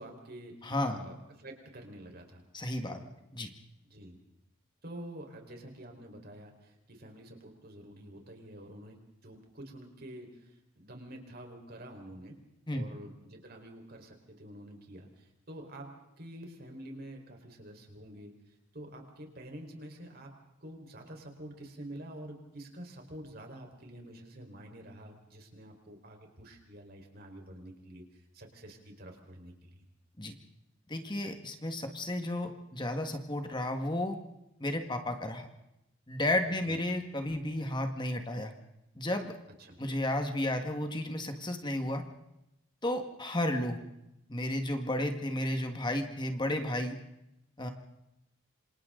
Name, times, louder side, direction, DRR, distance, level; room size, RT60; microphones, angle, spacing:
voice 1, 0.0-2.4 2.8-3.1 3.9-4.2 4.8-12.4 12.7-18.3 18.7-20.3 20.6-29.8 36.4-36.8 39.6-39.8, right 1 dB, 50° right, 3 dB, 4.7 m, -48 dB
voice 2, 0.6-1.0 2.5-3.0 3.3-3.5 12.7-12.9 30.2-30.3 30.9-34.2 34.6-35.5 36.1-38.5 39.0-39.4 39.8-42.0 42.8-43.8 44.3-47.0 47.6-47.7, left 1 dB, 25° left, 5 dB, 1.7 m, -32 dB
27.5 x 27.0 x 3.9 m, 0.87 s
head